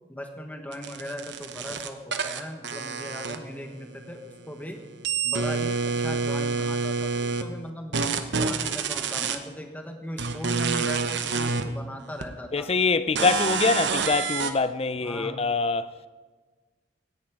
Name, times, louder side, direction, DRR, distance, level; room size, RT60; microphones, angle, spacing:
voice 1, 0.1-4.8 5.2-8.0 8.3-12.7 13.2-13.3 15.0-15.4, equal, 10° left, 1.3 m, -38 dB
sound 1, 0.7-3.8 4.1-7.4 7.9-9.4 10.2-11.6 12.2-12.3 13.2-14.5, right 4 dB, 65° right, 0.9 m, -28 dB
voice 2, 12.5-16.1, left 4 dB, 30° left, 0.5 m, -24 dB
17.0 x 10.5 x 4.8 m
head